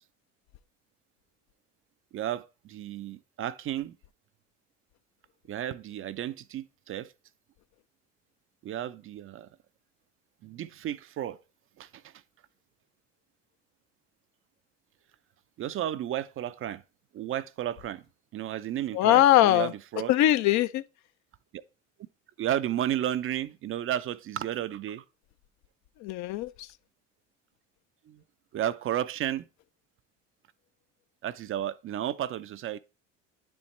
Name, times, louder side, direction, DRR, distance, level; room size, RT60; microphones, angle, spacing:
voice 1, 2.1-3.9 5.5-7.1 8.6-9.5 10.4-11.4 11.8-12.0 15.6-16.8 17.1-18.0 18.3-20.1 22.4-25.0 28.1-28.2 28.5-29.5 31.2-32.8, right 11 dB, 35° right, 0.4 m, -33 dB
voice 2, 18.9-19.7 20.1-20.8 26.0-26.5, left 14 dB, 50° left, 0.4 m, -21 dB
9.6 x 4.3 x 3.2 m
hypercardioid pair, 65°, 36 cm